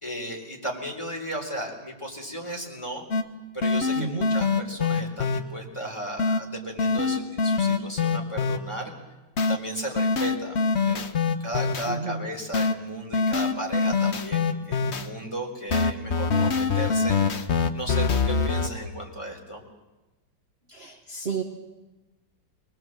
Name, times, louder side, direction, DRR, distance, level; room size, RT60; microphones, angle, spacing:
voice 1, 0.0-3.0 3.5-8.9 9.5-19.6, right 1 dB, 15° left, 1 dB, 3.8 m, -35 dB
sound 1, 3.1-3.2 3.6-5.4 6.2-6.4 6.8-8.6 9.4-9.6 10.0-11.9 12.5-12.7 13.1-15.1 15.7-18.7, left 4 dB, 45° left, 1.0 m, -24 dB
voice 2, 3.9-4.3 11.9-12.3 20.7-21.4, right 5 dB, 35° right, 2 dB, 1.5 m, -32 dB
24.0 x 20.5 x 7.6 m, 1.1 s
omnidirectional pair, 2.2 m